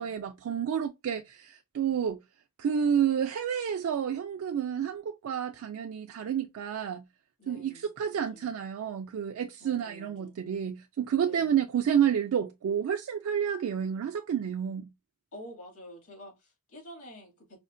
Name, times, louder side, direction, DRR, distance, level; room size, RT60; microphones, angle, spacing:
voice 1, 0.0-2.2 2.6-7.0 7.5-14.9, right 8 dB, 65° right, 0.3 m, -30 dB
voice 2, 7.4-8.5 9.6-10.4 11.2-11.6 15.3-17.6, equal, 65° left, 2.1 m, -49 dB
5.0 x 2.1 x 2.5 m
head